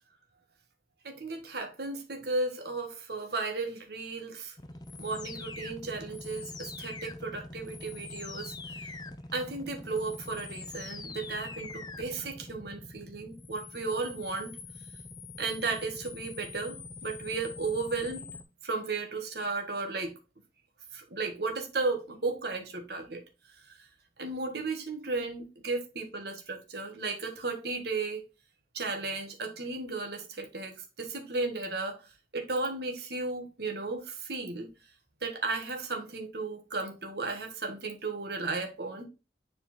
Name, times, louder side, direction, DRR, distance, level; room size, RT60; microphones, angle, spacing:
voice 1, 1.0-4.6 5.0-8.8 9.3-14.5 15.4-18.2 18.6-20.2 20.9-23.2 23.6-23.8 24.2-28.2 28.7-32.1 32.3-34.7 35.2-39.0, right 3 dB, 60° right, 1.5 m, -34 dB
sound 1, 4.6-18.4, left 3 dB, 20° left, 0.6 m, -44 dB
7.3 x 4.2 x 4.3 m
head